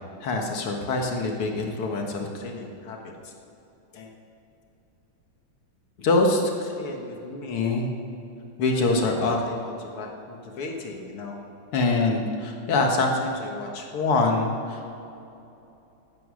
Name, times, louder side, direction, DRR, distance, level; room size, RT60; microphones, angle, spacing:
voice 1, 0.2-3.1 3.9-4.1 6.0-7.9 8.6-11.4 11.7-14.9, left 2 dB, 85° left, 2 dB, 2.5 m, -26 dB
15.0 x 12.0 x 6.4 m, 2.9 s
omnidirectional pair, 2.4 m